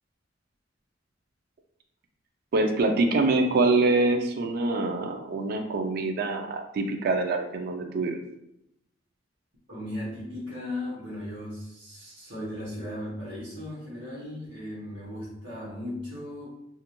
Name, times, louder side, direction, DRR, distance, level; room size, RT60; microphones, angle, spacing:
voice 1, 2.5-8.2, right 2 dB, 55° right, 5 dB, 0.3 m, -25 dB
voice 2, 9.7-16.5, left 1 dB, 85° right, -10 dB, 0.9 m, -37 dB
2.4 x 2.1 x 2.9 m, 0.81 s
head